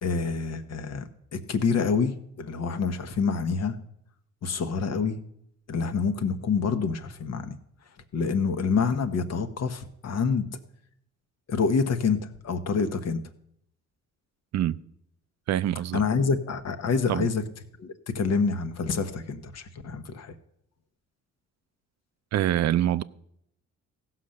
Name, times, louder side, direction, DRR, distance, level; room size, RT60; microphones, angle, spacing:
voice 1, 0.0-3.8 4.4-5.2 5.7-7.6 8.1-10.5 11.5-13.2 15.9-17.4 17.8-20.3, left 5 dB, 55° left, 1.2 m, -27 dB
voice 2, 15.5-16.0 17.1-17.3 22.3-23.0, right 12 dB, 60° right, 0.5 m, -25 dB
15.5 x 5.9 x 6.5 m
cardioid pair, 90°, 30 cm